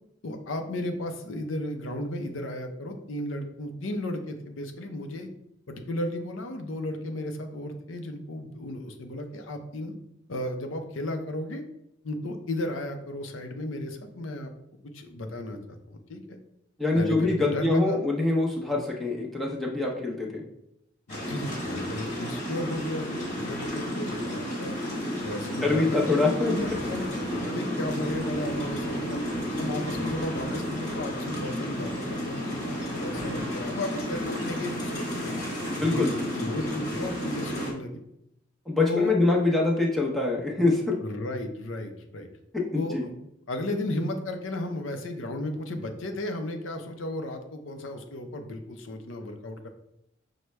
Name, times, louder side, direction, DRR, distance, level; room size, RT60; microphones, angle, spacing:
voice 1, 0.2-5.3 5.7-9.9 10.3-11.6 12.0-14.5 14.9-16.4 16.9-18.1 21.1-24.7 25.2-27.1 27.4-29.2 29.6-35.4 35.8-38.0 38.9-39.2 41.0-42.3 42.7-43.2 43.5-49.7, left 1 dB, 80° left, 5 dB, 0.6 m, -34 dB
voice 2, 16.8-20.4 25.6-26.5 35.8-36.2 38.7-40.9 42.5-43.0, left 2 dB, ahead, -3 dB, 0.7 m, -24 dB
sound 1, 21.1-37.7, equal, 40° left, 1.2 m, -32 dB
6.0 x 2.1 x 3.2 m, 0.80 s
head